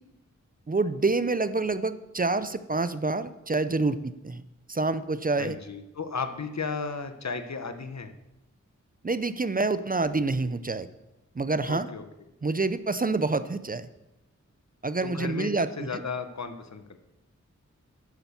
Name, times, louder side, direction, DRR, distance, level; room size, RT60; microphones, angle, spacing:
voice 1, 0.7-4.4 4.7-5.6 9.0-10.9 11.4-11.9 12.4-13.9 14.8-15.9, right 3 dB, 30° right, 13 dB, 0.6 m, -27 dB
voice 2, 5.4-8.1 11.7-12.0 15.0-17.0, left 5 dB, 65° left, 8 dB, 1.1 m, -34 dB
9.9 x 8.7 x 7.0 m, 0.93 s
wide cardioid pair, 95°, 29 cm